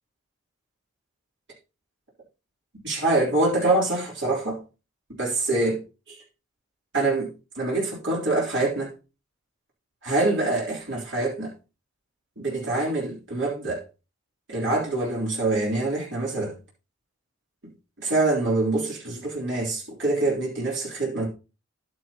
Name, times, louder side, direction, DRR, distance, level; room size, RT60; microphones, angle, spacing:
voice 1, 2.8-4.6 5.2-6.2 6.9-7.3 7.6-8.9 10.0-11.5 12.4-13.9 14.5-16.6 18.0-21.3, right 2 dB, 55° right, 3.5 m, -25 dB
10.5 x 9.5 x 2.9 m
head